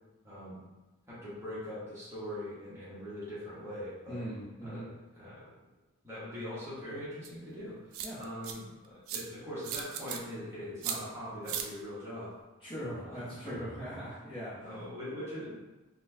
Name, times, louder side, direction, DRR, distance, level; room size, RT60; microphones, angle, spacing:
voice 1, 0.2-0.6 1.1-4.2 4.6-4.9 5.1-5.5 6.0-12.3 12.8-13.6 14.6-15.5, equal, 10° right, -11 dB, 0.9 m, -42 dB
voice 2, 4.1-4.9 8.0-8.2 12.6-14.7, equal, 25° left, -9 dB, 0.9 m, -40 dB
sound 1, 7.2-7.3 7.9-8.5 9.1-9.2 9.6-10.2 10.8-11.0 11.5-11.7, right 8 dB, 70° right, 0.3 m, -36 dB
4.1 x 2.3 x 2.7 m, 1.1 s
head